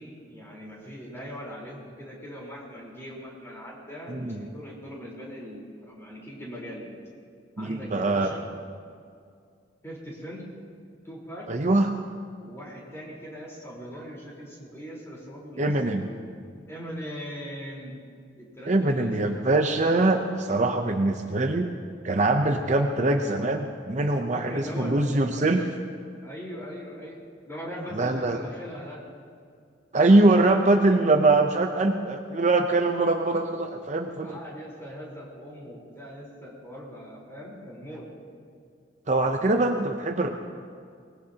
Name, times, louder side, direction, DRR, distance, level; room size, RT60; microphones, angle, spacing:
voice 1, 0.0-6.9 7.6-8.5 9.8-10.5 11.0-11.5 12.4-16.2 16.7-17.9 18.4-19.5 24.3-25.6 26.2-27.2 27.5-29.0 34.2-38.1, equal, 15° left, -4 dB, 4.1 m, -40 dB
voice 2, 4.1-4.4 7.6-8.3 11.5-11.9 15.6-16.1 18.7-21.7 22.0-25.6 27.9-28.4 29.9-34.4 39.1-40.3, right 2 dB, 40° right, 4 dB, 0.7 m, -23 dB
24.0 x 19.5 x 2.9 m, 2.2 s
head